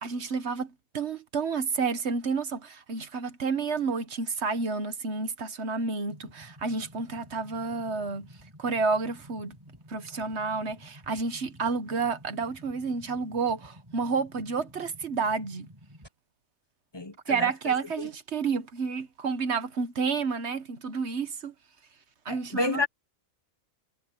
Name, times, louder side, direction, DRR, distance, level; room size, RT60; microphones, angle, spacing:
voice 1, 0.0-8.3 8.6-9.6 9.9-15.7 17.3-21.5 22.2-22.9, right 4 dB, 55° right, 1.5 m, -30 dB
sound 1, 6.1-16.1, equal, 20° right, 6.3 m, -52 dB
voice 2, 16.9-18.1 22.3-22.9, left 3 dB, 20° left, 0.9 m, -31 dB
omnidirectional pair, 1.4 m